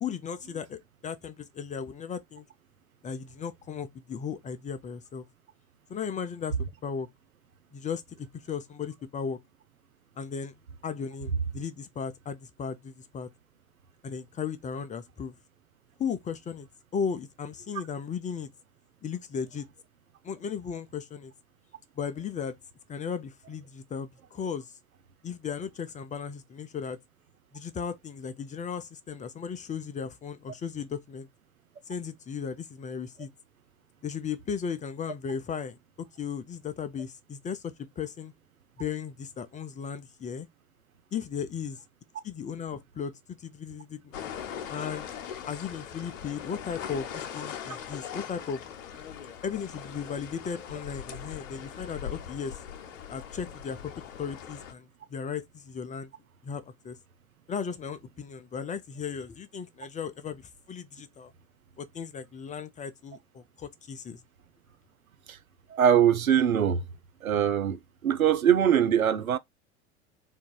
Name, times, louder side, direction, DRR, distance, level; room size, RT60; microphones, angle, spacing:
voice 1, 0.0-2.4 3.0-5.3 5.9-6.6 6.8-7.1 7.7-9.4 10.2-10.5 10.8-13.3 14.0-15.3 16.0-16.7 16.9-18.5 19.0-19.7 20.2-21.3 22.0-22.6 22.9-24.7 25.2-27.0 27.5-31.3 31.9-33.3 34.0-38.3 38.8-40.5 41.1-41.8 42.2-44.1 44.7-45.1 45.5-48.6 49.4-52.6 53.1-53.9 54.2-56.1 56.4-57.0 57.5-60.4 60.7-61.3 61.8-64.2, left 6 dB, 20° left, 0.5 m, -36 dB
sound 1, 44.1-54.7, left 8 dB, 65° left, 0.8 m, -40 dB
voice 2, 65.7-66.8 67.2-69.4, right 9 dB, 85° right, 0.6 m, -23 dB
3.6 x 2.5 x 4.5 m
figure-of-eight pair, 75°, 41 cm